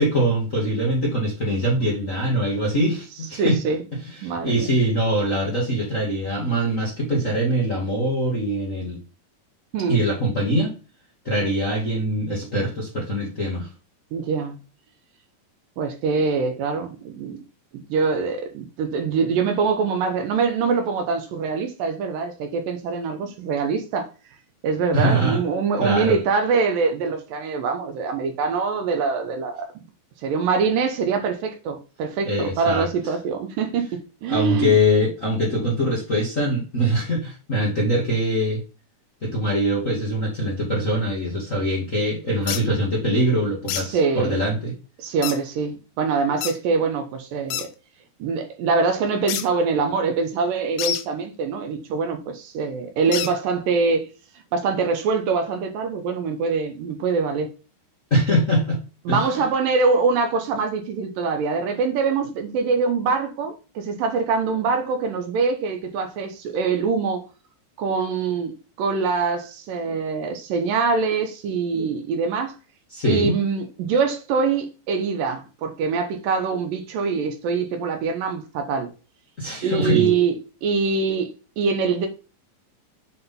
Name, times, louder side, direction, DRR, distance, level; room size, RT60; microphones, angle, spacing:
voice 1, 0.0-3.6 4.2-9.0 9.9-10.7 11.2-13.7 24.9-25.4 25.8-26.2 32.2-32.9 34.3-38.6 39.2-44.7 58.1-58.8 59.1-59.3 72.9-73.3 79.4-80.1, equal, 30° left, 1.6 m, -23 dB
voice 2, 3.4-3.8 4.2-4.7 9.7-10.0 14.1-14.6 15.8-17.4 17.9-24.1 24.6-29.8 30.2-34.8 43.8-44.3 45.0-47.7 48.2-54.1 54.5-57.5 59.1-67.3 67.8-72.5 73.0-78.9 79.6-82.1, right 5 dB, 75° right, 2.6 m, -24 dB
sound 1, 42.5-42.6 43.7-43.9 45.2-45.4 46.4-46.6 47.5-47.7 49.3-49.5 50.8-51.0 53.1-53.3, left 11 dB, 85° left, 2.4 m, -27 dB
8.0 x 3.8 x 3.6 m
omnidirectional pair, 4.2 m